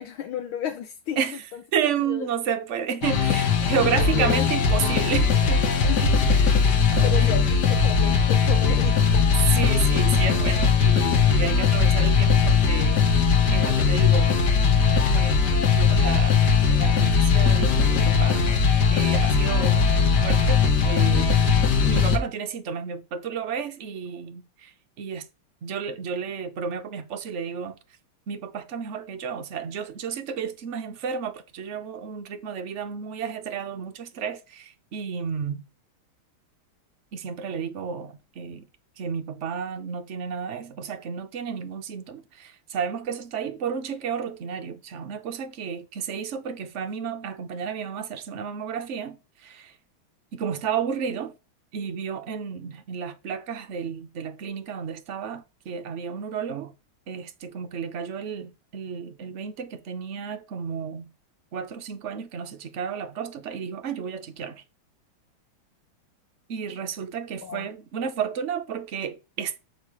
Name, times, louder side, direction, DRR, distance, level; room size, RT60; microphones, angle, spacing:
voice 1, 0.0-1.2 2.1-2.3 3.9-4.4 5.8-6.3 7.0-9.2 67.4-67.7, left 9 dB, 75° left, 1.6 m, -33 dB
voice 2, 1.7-5.6 6.2-6.6 6.9-7.5 9.5-13.2 13.5-14.3 14.6-14.7 15.1-15.4 15.7-18.6 18.9-19.8 20.2-21.4 21.8-24.7 25.0-25.2 25.6-27.8 28.3-35.6 37.1-38.6 39.0-49.7 50.3-51.3 51.7-56.7 57.1-61.1 61.5-64.6 66.5-69.6, right 7 dB, 55° right, 0.8 m, -32 dB
sound 1, 3.0-22.2, left 6 dB, 55° left, 1.8 m, -20 dB
6.4 x 4.7 x 4.8 m
omnidirectional pair, 2.3 m